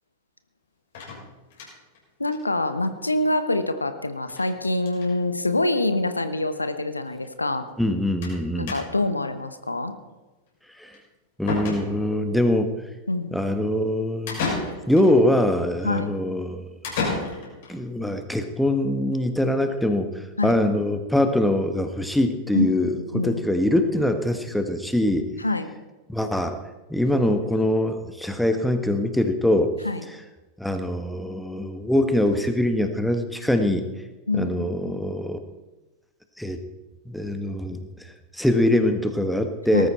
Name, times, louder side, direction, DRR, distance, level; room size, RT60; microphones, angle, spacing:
sound 1, 0.9-2.0 2.3-2.4 2.7-2.8 3.0-3.1 4.3-4.5 4.8-5.1 6.0-6.1 6.4-6.5 8.2-8.4 8.7-9.1 10.9-11.0 11.5-12.2 14.3-15.1 16.8-17.7, left 4 dB, 55° left, 6.3 m, -31 dB
voice 1, 2.2-7.7 8.6-9.9 13.1-13.3 15.8-16.1 20.4-20.6 22.5-23.4 25.4-25.7 29.8-30.0 34.3-34.5 35.1-35.2 39.7-39.9, left 2 dB, 80° left, 10 dB, 1.1 m, -25 dB
voice 2, 7.8-8.7 10.8-10.9 11.4-12.7 13.3-16.7 17.7-20.1 20.4-25.3 26.1-26.6 26.9-29.7 30.6-33.9 34.3-35.4 36.4-36.6 37.1-37.8 38.3-39.9, left 1 dB, ahead, 7 dB, 1.4 m, -23 dB
19.0 x 13.5 x 4.3 m, 1.1 s
figure-of-eight pair, 90°, 0 cm